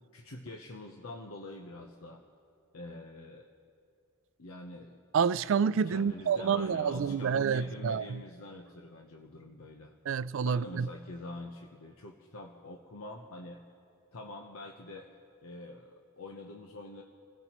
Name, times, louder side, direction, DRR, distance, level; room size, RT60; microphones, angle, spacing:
voice 1, 0.1-2.2 2.7-3.5 4.4-5.0 5.9-9.9 10.4-13.6 14.1-15.1 15.4-17.0, left 2 dB, 90° left, 0.9 m, -45 dB
voice 2, 5.1-8.2 10.1-10.9, right 6 dB, 60° right, 0.3 m, -28 dB
27.0 x 16.0 x 3.0 m
head